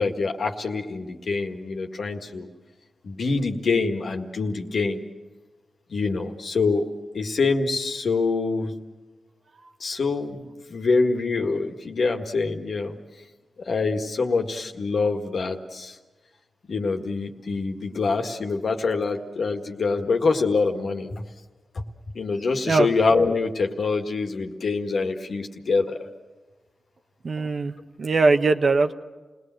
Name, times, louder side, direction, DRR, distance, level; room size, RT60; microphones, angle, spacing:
voice 1, 0.0-2.5 3.0-5.1 5.9-6.9 7.1-8.7 9.8-13.0 13.6-16.0 16.7-21.2 21.7-21.8 22.1-26.0, left 4 dB, 75° left, 3 dB, 1.9 m, -25 dB
voice 2, 27.2-27.7 28.0-28.9, right 3 dB, 65° right, 7 dB, 1.2 m, -20 dB
29.0 x 19.0 x 7.8 m, 1.3 s
cardioid pair, 45°, 0 cm